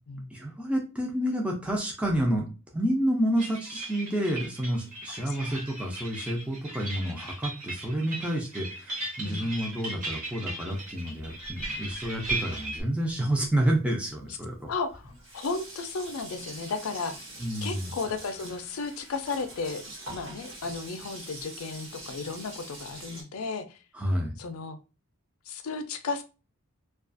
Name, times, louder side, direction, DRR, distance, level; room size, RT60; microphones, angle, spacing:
voice 1, 0.3-14.7 17.4-17.9 23.9-24.4, right 1 dB, 5° right, -1 dB, 0.4 m, -29 dB
sound 1, 3.4-12.8, right 2 dB, 40° right, 0.9 m, -37 dB
voice 2, 5.3-5.6 9.2-9.5 14.7-17.1 17.6-19.8 20.1-23.8 24.4-24.8 25.5-26.2, left 4 dB, 85° left, 9 dB, 0.4 m, -34 dB
Sink (filling or washing), 10.7-13.8 14.6-14.7 14.9-23.2, right 1 dB, 60° right, 1.1 m, -44 dB
2.4 x 2.3 x 2.4 m, 0.32 s
head